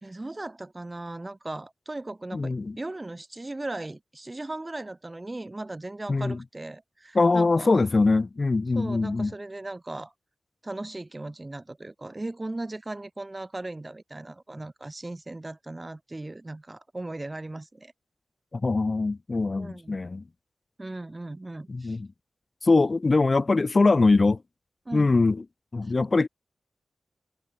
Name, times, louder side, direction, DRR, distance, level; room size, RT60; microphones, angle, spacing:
voice 1, 0.0-7.8 8.7-10.1 10.6-17.9 19.5-20.0 20.8-22.0 24.9-25.2 25.8-25.9, right 2 dB, 25° right, 2.1 m, -37 dB
voice 2, 2.3-2.8 6.1-6.4 7.1-9.3 18.5-20.2 21.7-22.1 22.6-24.4 24.9-25.4 25.7-26.3, left 3 dB, 40° left, 1.3 m, -22 dB
cardioid pair, 70°, 0 cm